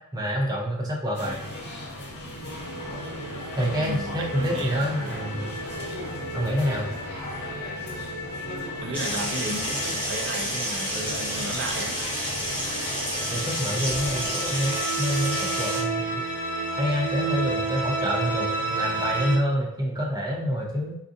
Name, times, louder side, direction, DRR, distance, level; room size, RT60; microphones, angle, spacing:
voice 1, 0.1-1.4 3.6-5.6 6.3-6.9 13.3-14.7 15.0-16.2 16.8-21.0, equal, 15° right, -2 dB, 0.7 m, -27 dB
sound 1, 1.1-14.8, left 1 dB, 50° left, 0.8 m, -38 dB
sound 2, 2.0-19.3, right 2 dB, 35° right, 1.3 m, -33 dB
voice 2, 3.8-5.3 8.8-12.0, right 2 dB, 55° right, 3 dB, 0.5 m, -34 dB
sound 3, 8.9-15.8, equal, 5° left, 1.3 m, -30 dB
3.9 x 2.5 x 2.5 m, 0.75 s
head